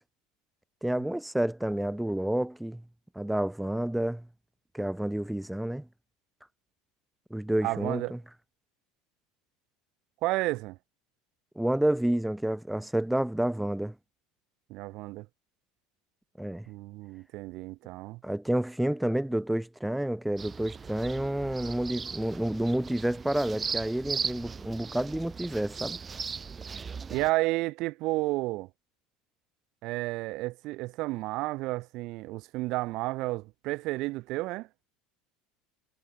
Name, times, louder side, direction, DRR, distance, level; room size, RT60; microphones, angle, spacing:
voice 1, 0.8-2.8 3.1-4.3 4.7-5.9 7.3-8.2 11.5-13.9 16.4-16.6 18.2-26.0, right 1 dB, 5° right, 1.7 m, -29 dB
voice 2, 7.6-8.2 10.2-10.8 14.7-15.3 16.7-18.2 27.1-28.7 29.8-34.7, right 20 dB, 60° right, 0.7 m, -31 dB
sound 1, 20.4-27.3, right 5 dB, 25° right, 1.6 m, -38 dB
supercardioid pair, 125°, 0 cm